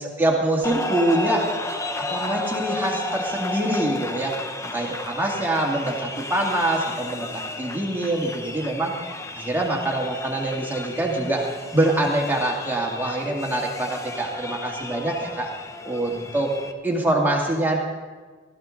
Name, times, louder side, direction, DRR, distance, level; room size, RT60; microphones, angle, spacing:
voice 1, 0.0-1.5 2.0-4.3 4.6-9.0 9.4-15.5 15.8-16.6 16.8-17.8, right 1 dB, 10° right, -2 dB, 2.2 m, -24 dB
sound 1, 0.6-16.7, left 2 dB, 15° left, 0.8 m, -33 dB
16.5 x 13.5 x 3.9 m, 1.4 s
head